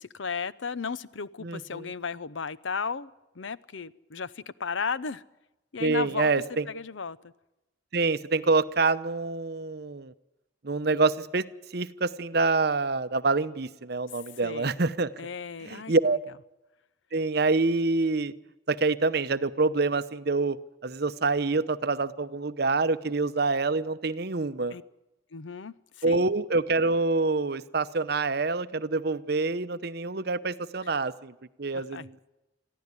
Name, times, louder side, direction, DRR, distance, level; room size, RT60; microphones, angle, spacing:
voice 1, 0.0-3.1 3.4-5.2 5.7-6.3 6.7-7.2 14.4-14.8 15.2-15.9 24.7-24.8 25.3-26.2 31.7-32.1, left 5 dB, 85° left, 18 dB, 0.8 m, -34 dB
voice 2, 1.4-1.9 5.8-6.7 7.9-10.1 10.6-11.4 11.7-15.1 15.6-16.2 17.1-18.3 18.7-20.6 20.8-24.8 26.0-31.3 31.6-32.2, right 3 dB, 55° right, 13 dB, 0.8 m, -26 dB
23.0 x 14.5 x 9.8 m, 0.96 s
head